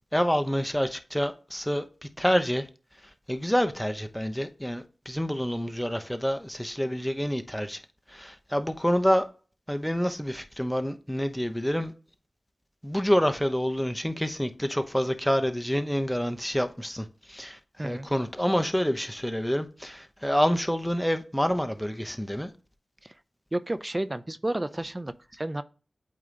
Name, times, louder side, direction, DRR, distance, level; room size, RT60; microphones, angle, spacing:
voice 1, 0.1-1.8 2.2-2.7 3.3-7.8 8.1-9.3 9.7-11.9 12.8-22.5, equal, 5° left, 0.9 m, -27 dB
voice 2, 23.5-25.6, right 1 dB, 30° right, 0.6 m, -31 dB
8.5 x 3.0 x 3.9 m
cardioid pair, 45°, 0 cm